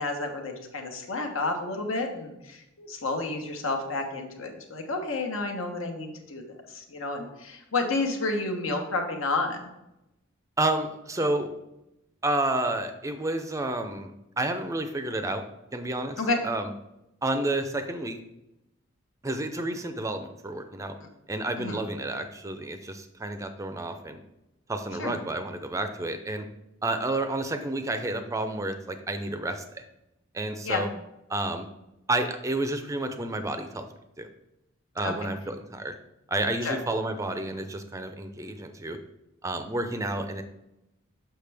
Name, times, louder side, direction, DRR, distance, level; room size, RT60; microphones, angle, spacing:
voice 1, 0.0-6.4 6.7-9.6 16.2-16.4 21.6-21.8 25.0-25.1 30.6-30.8 35.0-35.1 36.6-36.8, left 3 dB, 85° left, 3 dB, 1.1 m, -30 dB
voice 2, 10.6-11.5 12.2-15.4 15.7-16.7 17.2-18.2 19.2-21.0 21.3-24.2 24.7-26.4 26.8-29.8 30.3-30.9 31.3-31.7 32.1-33.9 34.2-34.3 35.0-35.9 36.3-39.0 39.4-40.4, right 2 dB, 15° right, 8 dB, 0.4 m, -30 dB
6.6 x 5.8 x 3.4 m, 0.90 s
head